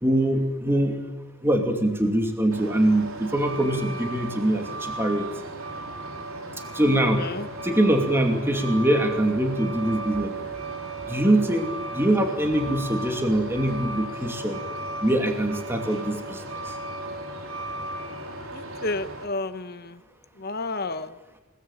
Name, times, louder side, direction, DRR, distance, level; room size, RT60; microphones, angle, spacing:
voice 1, 0.0-1.0 1.4-5.3 6.7-7.2 7.6-10.3 11.1-14.6 15.0-16.7, right 1 dB, 10° right, 4 dB, 2.6 m, -23 dB
Truck, 2.5-19.2, right 2 dB, 75° right, 4.1 m, -35 dB
voice 2, 18.5-20.0 20.4-21.1, left 2 dB, 45° left, 11 dB, 1.2 m, -31 dB
29.0 x 19.0 x 9.1 m, 1.0 s
head